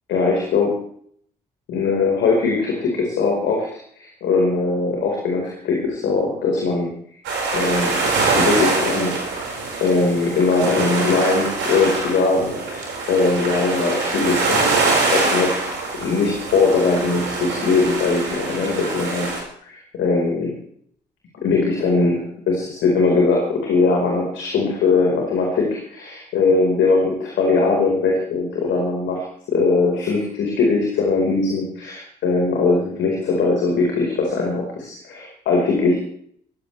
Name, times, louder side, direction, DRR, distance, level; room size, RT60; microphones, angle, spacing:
voice 1, 0.1-0.7 1.7-3.7 3.9-6.9 7.5-8.1 8.4-9.5 9.8-15.7 16.0-19.3 19.6-20.5 21.4-36.0, left 3 dB, 60° left, -1 dB, 4.8 m, -20 dB
sound 1, 7.2-19.4, right 3 dB, 65° right, 5.3 m, -24 dB
22.0 x 15.5 x 3.4 m, 0.62 s
figure-of-eight pair, 40°, 21 cm